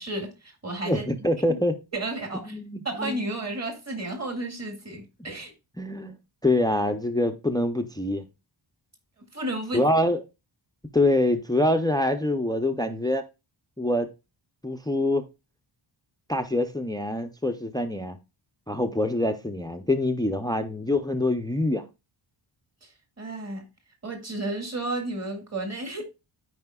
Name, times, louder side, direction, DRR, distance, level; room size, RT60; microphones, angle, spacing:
voice 1, 0.0-1.0 1.5-1.6 1.9-2.6 2.9-5.5 9.3-9.8 22.8-22.9 23.2-23.7 24.0-26.0, right 2 dB, 35° right, 1.9 m, -32 dB
voice 2, 0.9-1.8 2.5-3.3 5.8-6.2 6.4-8.2 9.7-10.2 10.9-13.2 13.8-14.1 14.6-15.3 16.3-18.2 18.7-21.8, left 1 dB, 10° left, 0.4 m, -25 dB
13.0 x 4.9 x 2.2 m
wide cardioid pair, 160°, 48 cm